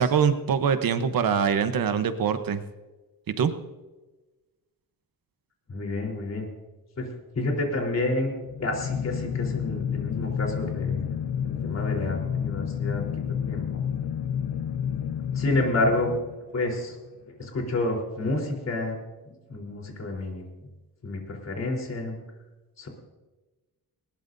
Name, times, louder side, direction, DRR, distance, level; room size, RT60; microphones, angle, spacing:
voice 1, 0.0-2.6 3.3-3.5, right 7 dB, 60° right, 9 dB, 1.0 m, -23 dB
voice 2, 5.7-6.5 7.0-8.3 8.6-11.1 11.4-13.8 15.3-16.1 16.5-17.0 17.4-19.0 19.3-20.4 21.0-22.2 22.8-22.9, left 2 dB, 40° left, 0 dB, 3.9 m, -29 dB
sound 1, 8.4-16.7, left 8 dB, 65° left, 0.7 m, -30 dB
20.5 x 20.0 x 2.7 m, 1.2 s
wide cardioid pair, 165°, 39 cm